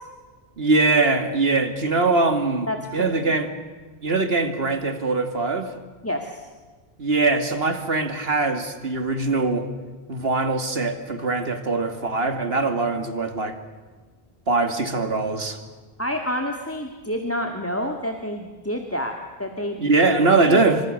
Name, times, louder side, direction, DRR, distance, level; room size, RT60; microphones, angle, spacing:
voice 1, 0.6-3.5 4.0-5.7 7.0-9.7 10.1-13.6 14.5-15.6 19.8-20.8, right 3 dB, 65° right, 8 dB, 2.5 m, -22 dB
voice 2, 2.7-3.2 6.0-6.5 16.0-19.8 20.5-20.6, left 1 dB, 15° left, 4 dB, 1.9 m, -28 dB
28.5 x 25.5 x 6.6 m, 1.4 s
omnidirectional pair, 1.1 m